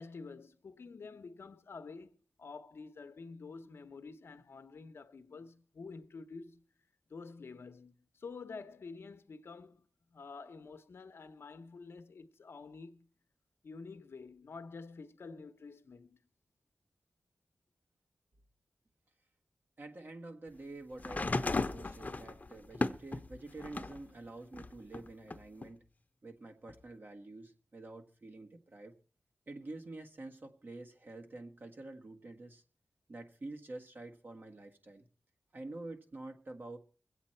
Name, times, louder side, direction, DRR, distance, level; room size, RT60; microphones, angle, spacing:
voice 1, 0.0-6.6 7.1-13.1 13.6-16.2, left 4 dB, 75° left, 0.8 m, -49 dB
voice 2, 19.8-25.8 26.2-29.0 29.5-32.6 33.1-35.1 35.5-36.8, right 2 dB, 55° right, 1.6 m, -48 dB
sound 1, 21.0-24.0 24.5-25.7 26.7-26.8, left 3 dB, 40° left, 0.8 m, -36 dB
22.0 x 8.3 x 4.4 m
cardioid pair, 55°, 4 cm